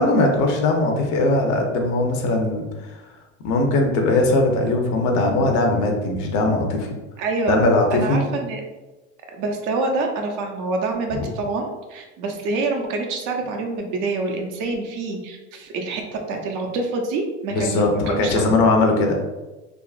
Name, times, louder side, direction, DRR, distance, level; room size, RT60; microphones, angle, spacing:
voice 1, 0.0-3.0 3.4-6.9 7.5-8.3 11.1-11.3 17.5-19.2, left 2 dB, 60° left, 2 dB, 0.7 m, -20 dB
voice 2, 7.2-7.6 7.9-8.6 9.3-18.5, right 3 dB, 65° right, 2 dB, 0.7 m, -26 dB
3.6 x 2.0 x 2.4 m, 1.1 s
supercardioid pair, 100°, 34 cm